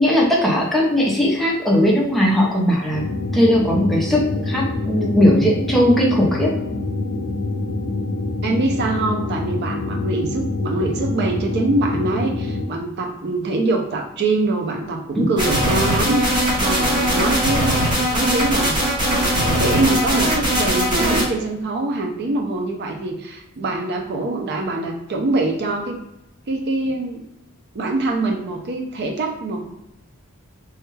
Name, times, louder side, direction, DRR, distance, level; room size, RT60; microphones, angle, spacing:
voice 1, 0.0-3.0 3.3-6.5 15.1-15.3, left 1 dB, ahead, -4 dB, 0.6 m, -18 dB
sound 1, 2.9-12.7, left 2 dB, 60° left, 0.4 m, -26 dB
voice 2, 8.4-17.8 18.1-18.8 19.1-26.0 26.5-27.2 27.7-29.7, right 2 dB, 50° right, 2 dB, 0.4 m, -24 dB
sound 2, 15.4-21.2, equal, 20° right, 1.0 m, -20 dB
3.4 x 2.2 x 3.1 m, 0.89 s
head